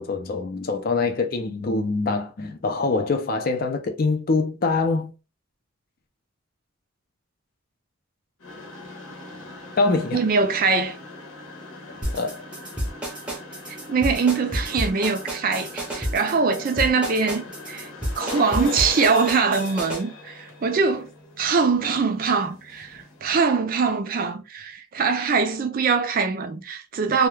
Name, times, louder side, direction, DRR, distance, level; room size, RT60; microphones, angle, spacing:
voice 1, 0.0-5.1 9.8-10.2 12.1-12.4, left 3 dB, 45° left, 0.4 m, -24 dB
sound 1, 8.4-23.3, left 2 dB, 85° left, 0.9 m, -39 dB
voice 2, 10.1-11.0 13.7-17.9 18.2-21.1 21.4-27.3, right 5 dB, 45° right, 0.4 m, -23 dB
sound 2, 12.0-20.0, equal, 5° right, 0.6 m, -30 dB
2.3 x 2.2 x 3.0 m
head